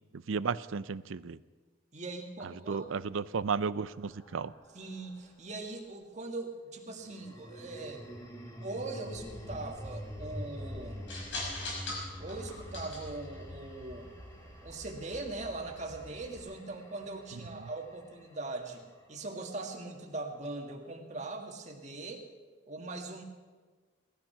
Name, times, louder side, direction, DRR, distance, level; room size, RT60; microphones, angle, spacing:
voice 1, 0.1-1.4 2.7-4.5, right 5 dB, 80° right, 17 dB, 0.5 m, -33 dB
voice 2, 1.9-2.9 4.7-8.1 8.6-11.1 12.2-14.1 14.6-22.3 22.7-23.2, right 2 dB, 35° right, 2 dB, 1.8 m, -41 dB
sound 1, 2.8-5.3 6.9-19.2, equal, 15° left, 1.7 m, -47 dB
sound 2, 9.0-16.4, left 2 dB, 65° left, 5.3 m, -44 dB
18.0 x 13.5 x 5.8 m, 1.4 s
head